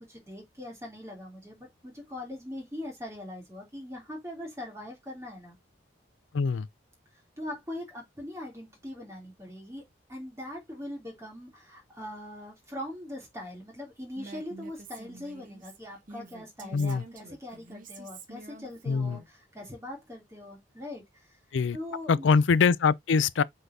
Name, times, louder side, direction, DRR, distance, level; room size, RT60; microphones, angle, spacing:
voice 1, 0.0-5.6 7.4-9.8 10.1-21.4 21.7-22.3, left 1 dB, 15° right, 3.0 m, -41 dB
voice 2, 6.3-6.7 16.7-17.0 18.9-19.2 21.5-21.8 22.1-23.4, left 5 dB, 75° left, 0.4 m, -23 dB
Female speech woman speaking, 14.2-19.3, right 3 dB, 45° right, 1.3 m, -47 dB
7.8 x 4.4 x 2.7 m
head